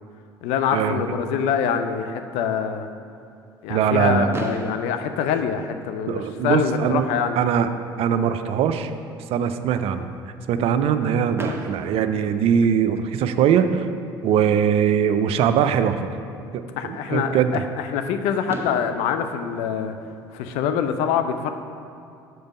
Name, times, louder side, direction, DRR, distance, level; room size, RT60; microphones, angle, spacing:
voice 1, 0.4-2.9 3.6-7.4 16.8-19.9 20.3-21.5, left 7 dB, 60° left, 8 dB, 0.5 m, -25 dB
voice 2, 3.7-4.3 6.1-7.7 8.0-8.9 9.3-10.1 10.5-13.9 14.2-16.0 16.5-17.6, right 8 dB, 50° right, 10 dB, 0.4 m, -21 dB
Fireworks, 4.3-6.3 7.2-7.3 7.4-7.7 8.0-8.1 11.4-13.2 14.9-15.0 18.0-18.1 18.5-20.8, right 2 dB, 20° right, 0.8 m, -36 dB
6.0 x 5.1 x 5.3 m, 2.5 s
figure-of-eight pair, 60°, 13 cm